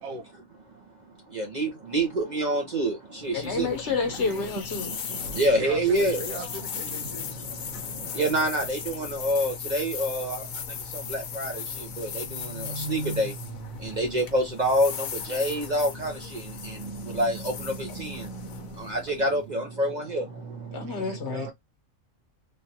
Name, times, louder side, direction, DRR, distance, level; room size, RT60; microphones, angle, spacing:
voice 1, 1.4-2.9 3.2-3.7 5.3-6.2 8.2-10.4 11.1-11.5 12.0-12.2 12.6-13.3 14.0-14.9 15.3-16.1 17.1-17.4 18.0-18.2 18.9-20.2, right 1 dB, 40° right, 0.7 m, -26 dB
sound 1, 3.2-19.4, left 7 dB, 75° left, 1.1 m, -37 dB
voice 2, 3.3-4.9 20.7-21.5, left 4 dB, 60° left, 1.2 m, -29 dB
voice 3, 5.4-7.3 20.9-21.5, right 2 dB, 80° right, 1.2 m, -38 dB
3.2 x 2.5 x 2.7 m
omnidirectional pair, 1.4 m